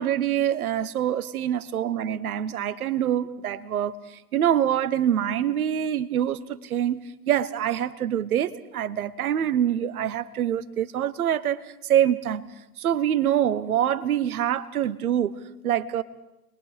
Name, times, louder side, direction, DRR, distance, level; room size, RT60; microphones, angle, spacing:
voice 1, 0.0-4.0 4.3-12.4 12.8-15.3 15.6-16.0, right 10 dB, 60° right, 1.2 m, -25 dB
29.5 x 21.5 x 5.0 m
figure-of-eight pair, 110°, 48 cm